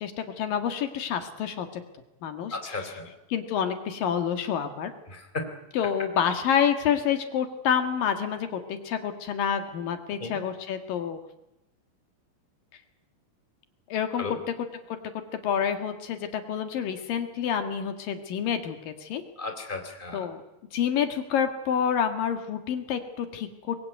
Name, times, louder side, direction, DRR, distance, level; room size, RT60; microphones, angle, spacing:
voice 1, 0.0-1.7 2.2-3.0 3.3-4.9 5.7-11.2 13.9-14.5 15.4-19.2 20.1-20.4 20.7-23.8, left 8 dB, 75° left, 7 dB, 3.4 m, -28 dB
voice 2, 2.5-3.1 5.1-5.5 10.2-10.4 14.2-14.4 19.4-20.3, left 3 dB, 15° left, 6 dB, 3.8 m, -34 dB
24.5 x 21.5 x 9.3 m, 0.89 s
omnidirectional pair, 4.0 m